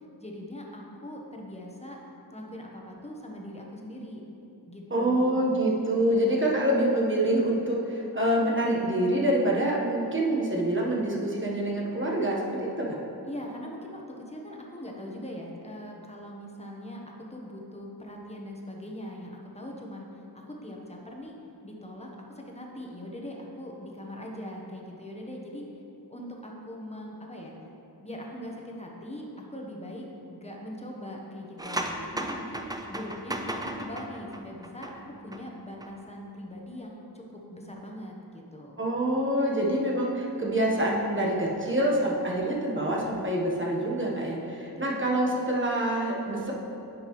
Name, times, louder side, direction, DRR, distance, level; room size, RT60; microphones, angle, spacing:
voice 1, 0.2-2.0 2.3-4.2 4.7-5.7 13.2-21.4 21.6-25.6 26.1-27.5 28.0-38.8 44.8-45.2, left 1 dB, 15° left, -1 dB, 1.1 m, -41 dB
voice 2, 4.9-13.0 38.8-46.5, right 1 dB, 30° right, -3 dB, 1.2 m, -26 dB
sound 1, 31.6-35.4 35.7-35.9, right 1 dB, 10° right, 0.4 m, -35 dB
9.9 x 5.3 x 3.1 m, 2.7 s
wide cardioid pair, 55°, 41 cm